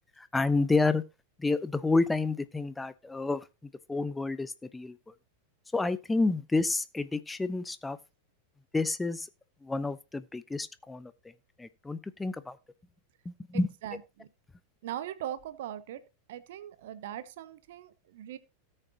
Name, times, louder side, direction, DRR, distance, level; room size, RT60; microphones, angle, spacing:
voice 1, 0.2-1.0 1.4-3.5 3.9-5.0 5.7-8.0 8.7-9.3 9.6-11.1 11.6-12.6 13.3-13.7, left 3 dB, 10° left, 0.5 m, -29 dB
voice 2, 13.5-14.3 14.8-16.0 16.3-18.4, right 11 dB, 55° right, 0.9 m, -40 dB
17.5 x 6.6 x 2.8 m
figure-of-eight pair, 90°, 0 cm